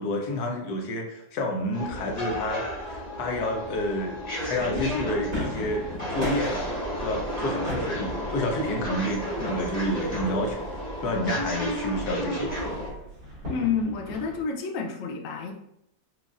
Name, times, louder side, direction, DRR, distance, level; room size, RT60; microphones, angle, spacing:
voice 1, 0.0-4.2 4.5-6.7 7.0-10.7 11.0-12.6, left 1 dB, 65° left, 1 dB, 1.1 m, -29 dB
sound 1, 1.7-12.9, equal, 25° left, 1.3 m, -32 dB
sound 2, 4.4-14.4, left 1 dB, 60° right, 2.1 m, -38 dB
voice 2, 13.5-15.5, left 5 dB, 80° left, 1 dB, 0.7 m, -29 dB
4.8 x 2.5 x 2.4 m, 0.78 s
omnidirectional pair, 2.0 m